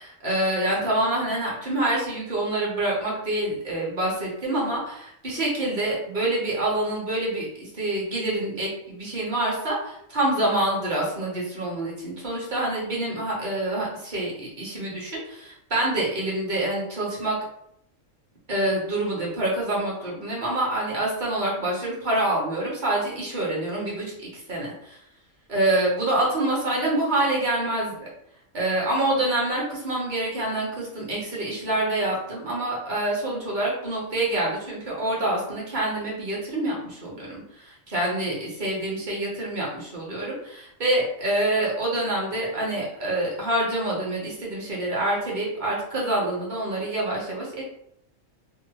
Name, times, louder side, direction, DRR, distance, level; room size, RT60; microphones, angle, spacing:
voice 1, 0.0-17.4 18.5-25.0 25.5-28.1 28.5-47.6, right 1 dB, 40° right, -4 dB, 0.8 m, -26 dB
2.8 x 2.0 x 2.7 m, 0.75 s
omnidirectional pair, 1.4 m